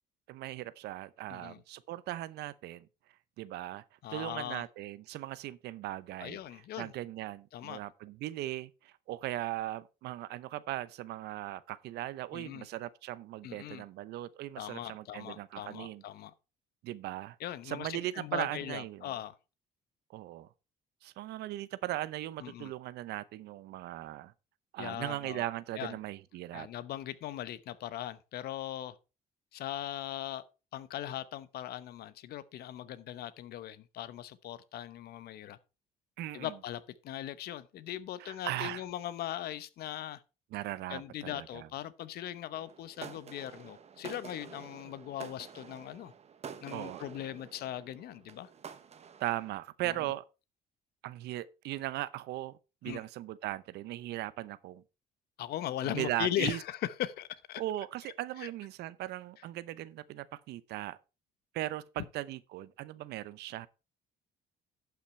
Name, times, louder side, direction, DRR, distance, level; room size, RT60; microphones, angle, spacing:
voice 1, 0.3-2.9 3.4-3.8 4.1-16.0 16.8-17.4 17.6-19.1 20.1-20.5 21.0-24.3 24.7-26.7 36.2-36.5 38.2-38.8 40.5-41.7 46.7-47.0 49.2-50.2 51.0-54.8 55.8-56.6 57.6-61.0 61.5-63.7, right 15 dB, 75° right, 0.7 m, -38 dB
voice 2, 1.3-1.6 4.0-4.6 6.2-6.9 7.5-7.8 12.3-12.7 13.4-13.8 14.6-16.3 17.4-19.3 22.4-22.7 24.8-25.5 25.7-25.9 26.5-29.0 29.5-30.4 30.7-35.6 36.3-40.2 40.9-46.1 46.6-48.5 49.8-49.9 52.9-53.0 55.4-57.6 58.4-58.5, left 12 dB, 70° left, 0.9 m, -39 dB
sound 1, 42.5-49.5, right 7 dB, 40° right, 1.2 m, -49 dB
11.5 x 5.9 x 4.4 m
cardioid pair, 110°, 17 cm